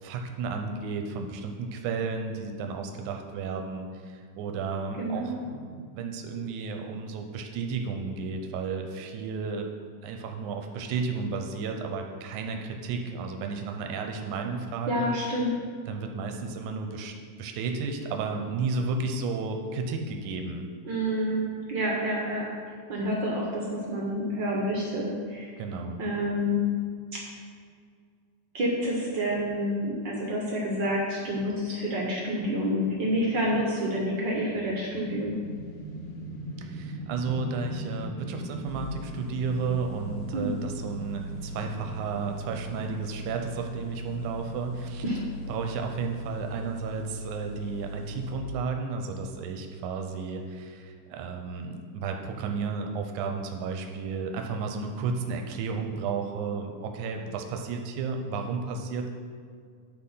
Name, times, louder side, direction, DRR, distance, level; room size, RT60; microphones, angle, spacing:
voice 1, 0.0-9.7 10.0-15.1 15.9-20.7 25.6-26.0 36.6-45.0 45.5-59.1, right 4 dB, 85° right, 4 dB, 2.1 m, -33 dB
voice 2, 5.0-5.4 14.9-15.5 20.8-22.4 22.9-25.5 26.0-26.6 27.1-27.2 28.5-35.3 40.3-40.5 45.0-45.2, equal, 65° right, -3 dB, 1.1 m, -28 dB
sound 1, 34.3-46.5, right 1 dB, 85° left, 2.8 m, -41 dB
sound 2, 38.7-48.3, equal, 65° left, 1.3 m, -39 dB
9.9 x 4.1 x 5.5 m, 2.1 s
omnidirectional pair, 3.5 m